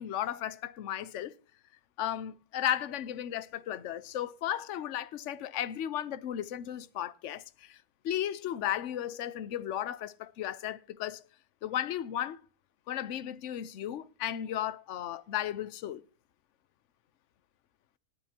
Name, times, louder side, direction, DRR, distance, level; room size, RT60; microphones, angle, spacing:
voice 1, 0.0-1.3 2.0-7.8 8.0-11.2 11.6-12.4 12.9-16.0, left 11 dB, 60° left, 1.0 m, -35 dB
19.5 x 8.7 x 2.8 m
omnidirectional pair, 1.6 m